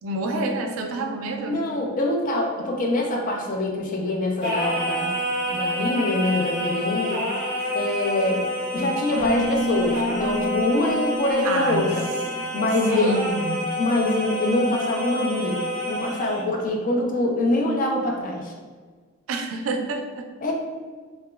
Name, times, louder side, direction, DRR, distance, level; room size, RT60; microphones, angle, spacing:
voice 1, 0.0-1.6 11.4-11.8 12.4-12.5 12.9-13.6 19.3-20.2, right 2 dB, 75° right, 4 dB, 0.3 m, -28 dB
voice 2, 1.5-5.2 5.5-7.2 7.7-8.4 8.7-13.1 13.8-15.6 15.9-18.5 20.4-20.5, left 1 dB, 40° left, 0 dB, 0.4 m, -24 dB
Singing, 4.4-16.5, equal, 25° left, 1.5 m, -28 dB
Keyboard (musical), 9.2-12.8, equal, 60° left, 1.0 m, -30 dB
2.8 x 2.2 x 2.3 m, 1.5 s
head